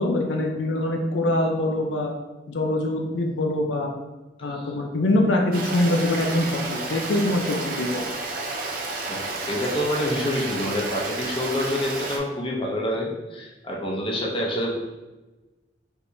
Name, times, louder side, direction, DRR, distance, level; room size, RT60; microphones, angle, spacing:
voice 1, 0.0-2.1 2.5-3.9 4.4-8.0, left 1 dB, 90° left, 2 dB, 0.6 m, -24 dB
Stream, 5.5-12.2, right 3 dB, 50° right, 0.6 m, -31 dB
voice 2, 9.1-14.7, left 1 dB, 30° left, -2 dB, 0.7 m, -27 dB
4.5 x 3.4 x 2.7 m, 1.1 s
head